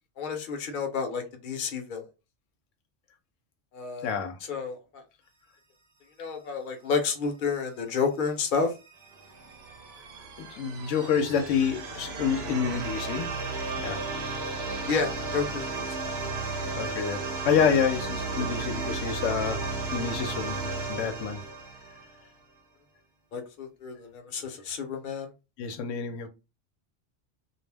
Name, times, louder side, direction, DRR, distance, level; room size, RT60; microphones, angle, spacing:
voice 1, 0.2-2.0 3.7-4.1 4.5-5.0 6.2-8.7 14.9-15.8 23.3-25.3, left 5 dB, 50° left, 0.7 m, -30 dB
voice 2, 4.0-4.4 10.4-13.3 13.8-14.0 16.8-19.6 19.9-21.4 25.6-26.3, left 7 dB, 85° left, 0.9 m, -28 dB
sound 1, 8.4-22.2, right 3 dB, 60° right, 0.8 m, -34 dB
2.4 x 2.0 x 3.3 m
omnidirectional pair, 1.3 m